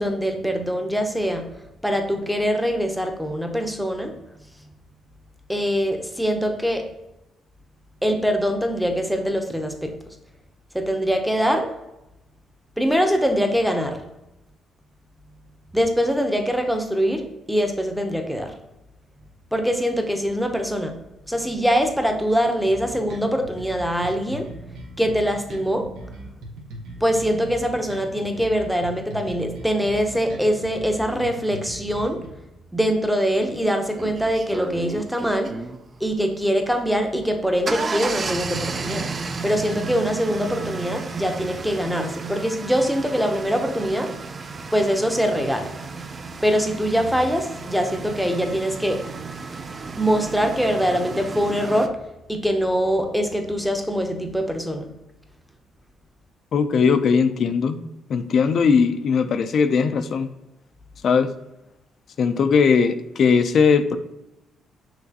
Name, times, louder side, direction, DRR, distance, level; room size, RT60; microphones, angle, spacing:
voice 1, 0.0-1.5 1.8-4.2 4.6-4.7 5.5-6.9 8.0-10.0 10.7-11.7 12.8-14.0 15.7-18.5 19.5-21.0 21.3-24.6 25.0-25.9 27.0-32.3 32.7-35.6 36.0-39.1 39.4-44.1 44.7-45.9 46.4-49.1 50.0-52.0 52.3-54.9, equal, ahead, 5 dB, 0.7 m, -23 dB
sound 1, 22.7-32.3, right 1 dB, 90° right, 0.9 m, -39 dB
sound 2, 33.3-33.4 34.0-35.8 37.2-51.9, right 4 dB, 35° right, 0.3 m, -33 dB
voice 2, 56.5-57.8 58.1-60.3 61.0-61.3 62.2-64.0, left 5 dB, 60° left, 10 dB, 0.4 m, -19 dB
5.8 x 3.0 x 2.8 m, 0.93 s
cardioid pair, 90°, 0 cm